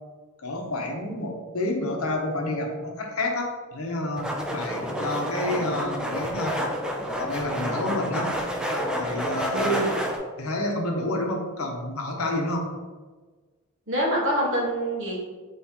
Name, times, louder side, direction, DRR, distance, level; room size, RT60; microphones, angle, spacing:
voice 1, 0.4-6.6 7.2-8.3 9.0-9.8 10.4-12.7, left 1 dB, 75° left, 1 dB, 0.8 m, -29 dB
sound 1, 4.2-10.2, equal, 5° right, 0.4 m, -29 dB
voice 2, 9.5-9.9 13.9-15.2, right 1 dB, 60° right, -4 dB, 1.3 m, -25 dB
5.7 x 3.1 x 2.9 m, 1.4 s
head